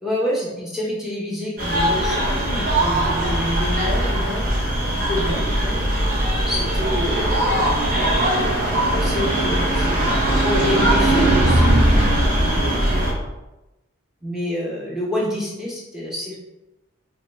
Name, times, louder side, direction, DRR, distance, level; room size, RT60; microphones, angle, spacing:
voice 1, 0.0-4.5 4.9-5.8 6.5-7.6 8.0-8.3 8.9-10.2 10.4-11.9 12.2-13.2 14.2-16.4, left 1 dB, ahead, -5 dB, 0.9 m, -28 dB
sound 1, 1.6-13.1, right 1 dB, 40° right, 0.8 m, -20 dB
4.6 x 2.3 x 3.1 m, 1.0 s
head